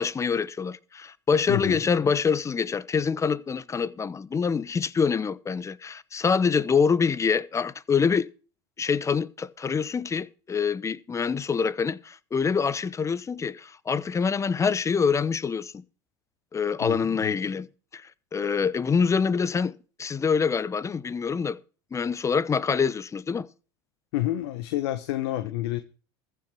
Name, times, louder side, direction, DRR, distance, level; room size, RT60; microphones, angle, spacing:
voice 1, 0.0-8.3 8.8-15.8 16.5-17.7 17.9-19.7 20.0-21.6 21.9-23.5, left 6 dB, 20° left, 0.8 m, -25 dB
voice 2, 1.5-1.8 16.8-17.4 24.1-25.8, left 14 dB, 75° left, 1.3 m, -29 dB
14.5 x 6.8 x 6.2 m
supercardioid pair, 100°, 14 cm